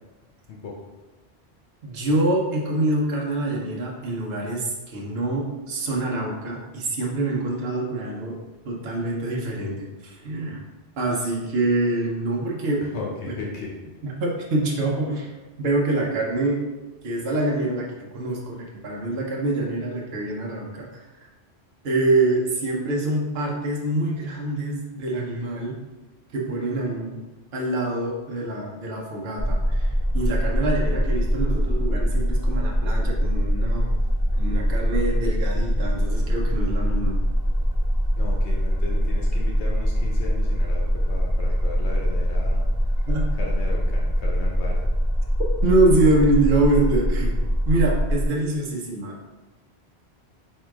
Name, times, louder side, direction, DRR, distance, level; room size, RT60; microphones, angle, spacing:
voice 1, 1.8-8.4 8.6-10.6 11.0-12.8 14.0-15.3 15.6-16.6 17.0-21.0 21.8-25.8 26.3-27.2 27.5-33.9 34.3-37.2 43.1-43.3 45.6-47.4 47.6-49.3, right 2 dB, 70° right, -2 dB, 1.0 m, -25 dB
voice 2, 12.9-13.7 38.2-42.6 43.4-44.9, left 4 dB, 85° left, -2 dB, 1.0 m, -35 dB
sound 1, 29.4-48.3, equal, 35° left, 1.4 m, -23 dB
3.7 x 2.7 x 4.5 m, 1.1 s
omnidirectional pair, 1.1 m